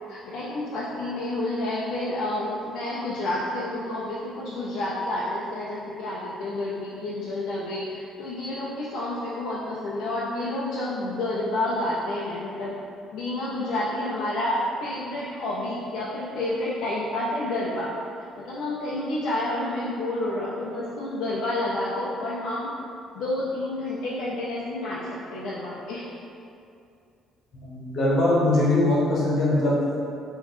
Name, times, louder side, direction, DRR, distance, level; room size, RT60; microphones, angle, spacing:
voice 1, 0.1-12.7 13.1-17.9 18.4-22.7 23.1-26.1, left 1 dB, 65° left, -7 dB, 0.5 m, -29 dB
voice 2, 27.5-29.7, left 1 dB, 40° left, -7 dB, 1.0 m, -21 dB
3.9 x 3.0 x 3.1 m, 2.5 s
cardioid pair, 175°, 0 cm